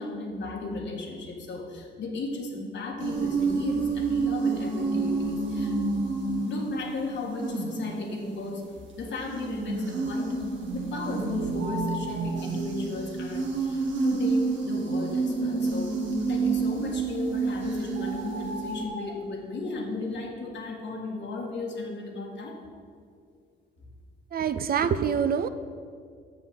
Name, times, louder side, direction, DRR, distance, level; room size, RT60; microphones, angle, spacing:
voice 1, 0.0-5.8 6.4-8.6 9.0-22.6, left 2 dB, 65° left, 1 dB, 1.6 m, -35 dB
sound 1, 3.0-8.7 9.2-18.9, right 4 dB, 65° right, 1.4 m, -29 dB
sound 2, 11.6-12.5 17.1-17.2 17.9-19.2, equal, 90° right, 1.2 m, -38 dB
voice 2, 24.3-25.5, right 7 dB, 50° right, 12 dB, 0.5 m, -25 dB
6.6 x 5.7 x 7.3 m, 2.2 s
cardioid pair, 90°, 20 cm